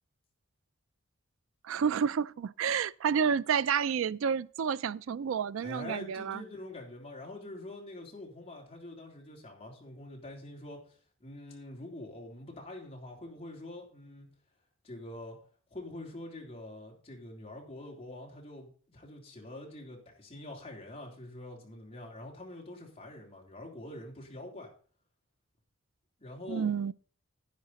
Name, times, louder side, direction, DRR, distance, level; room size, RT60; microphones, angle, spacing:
voice 1, 1.6-6.4 26.5-26.9, right 7 dB, 75° right, 0.4 m, -30 dB
voice 2, 5.6-14.3 14.8-15.4 15.7-24.7 26.2-26.7, left 1 dB, 30° left, 3.3 m, -45 dB
10.5 x 9.8 x 4.1 m
head